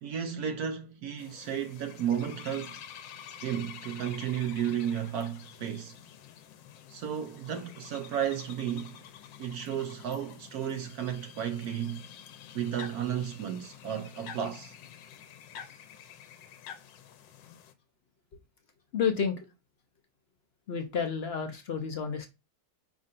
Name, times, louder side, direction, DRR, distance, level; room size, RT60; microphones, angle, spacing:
voice 1, 0.0-2.8 3.4-5.9 6.9-9.0 9.4-12.0 12.5-14.7, right 9 dB, 70° right, 1.0 m, -33 dB
sound 1, 1.2-17.7, left 9 dB, 85° left, 1.4 m, -48 dB
voice 2, 18.9-19.4 20.7-22.3, left 6 dB, 65° left, 0.6 m, -30 dB
5.4 x 3.6 x 2.5 m
omnidirectional pair, 2.0 m